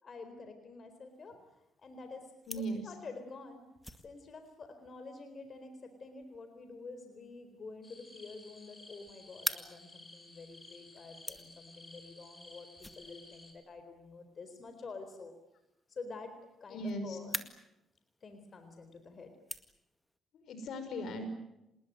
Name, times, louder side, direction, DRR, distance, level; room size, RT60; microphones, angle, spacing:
voice 1, 0.0-3.7 4.0-15.3 15.9-17.5 18.2-19.3, left 3 dB, 45° left, 7 dB, 4.1 m, -48 dB
sound 1, 1.1-20.2, left 1 dB, 5° left, 2.0 m, -48 dB
voice 2, 2.5-2.9 16.7-17.2 20.3-21.3, equal, 70° left, 9 dB, 5.7 m, -38 dB
sound 2, 7.8-13.5, left 2 dB, 20° left, 5.6 m, -55 dB
27.0 x 20.5 x 9.3 m, 0.90 s
cardioid pair, 90°, 0 cm